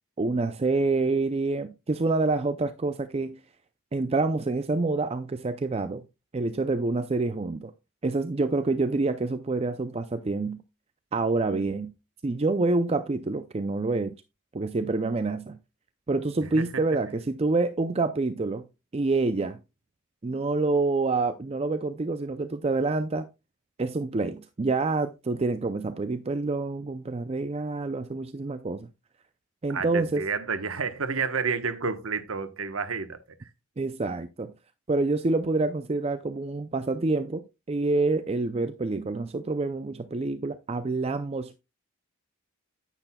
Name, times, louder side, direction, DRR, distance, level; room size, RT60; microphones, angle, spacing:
voice 1, 0.2-3.4 3.9-6.0 6.3-7.7 8.0-10.6 11.1-11.9 12.2-14.2 14.5-15.6 16.1-18.6 18.9-19.6 20.2-23.3 23.8-28.9 29.6-30.2 33.8-34.5 34.9-37.4 37.7-41.6, right 3 dB, 30° right, 0.5 m, -27 dB
voice 2, 29.7-33.2, right 5 dB, 75° right, 1.1 m, -30 dB
9.9 x 9.0 x 2.3 m
head